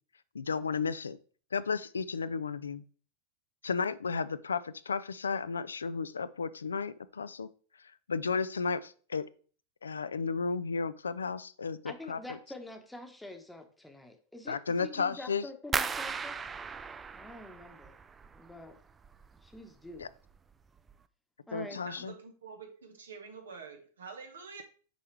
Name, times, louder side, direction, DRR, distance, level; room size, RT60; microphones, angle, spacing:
voice 1, 0.3-1.2 1.5-2.8 3.6-7.5 8.1-9.3 9.8-12.4 14.5-15.5 20.0-20.1 21.5-22.1, left 5 dB, 85° left, 15 dB, 0.3 m, -33 dB
voice 2, 11.8-16.4 17.1-18.0 18.3-18.8 19.4-20.1 21.5-22.1, left 2 dB, 5° left, 5 dB, 1.0 m, -46 dB
sound 1, 15.7-18.6 18.9-19.6 19.9-20.4 20.8-20.9, right 5 dB, 20° right, 0.3 m, -37 dB
voice 3, 21.7-24.6, right 5 dB, 80° right, 5 dB, 1.3 m, -47 dB
6.5 x 4.6 x 3.3 m, 0.42 s
hypercardioid pair, 100°, 0 cm